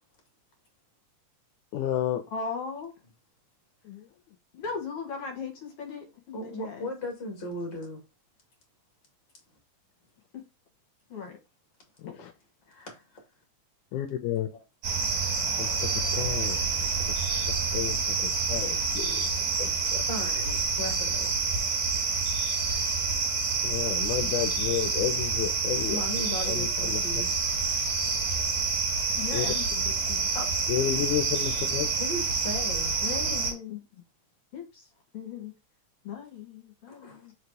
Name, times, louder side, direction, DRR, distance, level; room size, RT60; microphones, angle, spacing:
voice 1, 1.7-2.2 3.9-4.1 12.0-12.3 13.9-14.5 15.6-16.9 17.7-19.3 19.6-20.0 23.6-26.0 26.5-27.0 29.3-29.5 30.7-31.9, left 11 dB, 80° left, 2.2 m, -31 dB
voice 2, 2.3-2.9 4.5-6.9 11.1-11.4 12.0-12.1 19.6-19.7 29.1-30.3 33.0-33.8 34.5-34.9 35.1-35.5 36.0-37.3, left 5 dB, 55° left, 2.3 m, -38 dB
voice 3, 6.3-8.0 12.7-13.0 20.1-21.3 25.9-27.3 30.3-30.5 32.0-32.9 36.9-37.3, left 1 dB, 25° left, 2.2 m, -36 dB
sound 1, 14.8-33.5, right 4 dB, 60° right, 2.8 m, -28 dB
5.2 x 4.0 x 4.7 m
omnidirectional pair, 3.6 m